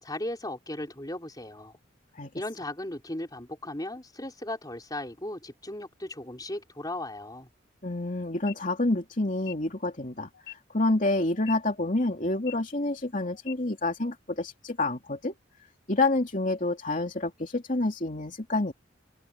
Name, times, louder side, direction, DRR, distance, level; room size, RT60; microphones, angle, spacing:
voice 1, 0.0-1.7 2.3-7.5, left 1 dB, 20° left, 4.2 m, -36 dB
voice 2, 7.8-15.3 15.9-18.7, left 2 dB, 40° left, 2.9 m, -28 dB
sound 1, 8.3-8.5 9.3-9.5 10.3-10.5 11.3-11.5 12.3-12.5 13.3-13.5, left 16 dB, 80° left, 4.1 m, -43 dB
head